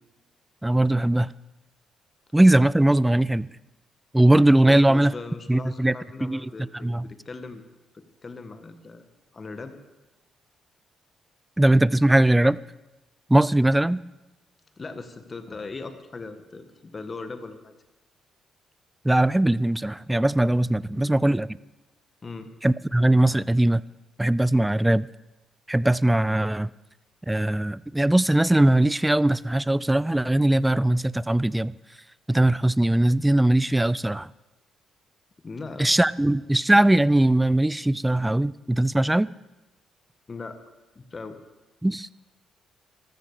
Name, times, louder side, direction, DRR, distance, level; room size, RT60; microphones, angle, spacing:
voice 1, 0.6-1.3 2.3-3.5 4.1-5.1 5.5-5.9 6.2-6.5 6.8-7.1 11.6-12.6 13.3-14.0 19.0-21.5 22.6-23.8 24.2-25.1 25.7-26.7 27.3-31.7 32.3-34.3 35.8-39.3 41.8-42.1, right 1 dB, 10° right, 20 dB, 0.4 m, -20 dB
voice 2, 4.7-7.6 7.9-9.1 9.3-9.8 14.8-17.7 20.9-21.2 22.2-22.5 35.4-35.9 40.3-40.6 40.9-41.4, left 3 dB, 35° left, 9 dB, 1.5 m, -39 dB
14.5 x 13.5 x 4.9 m, 1.0 s
cardioid pair, 90°, 0 cm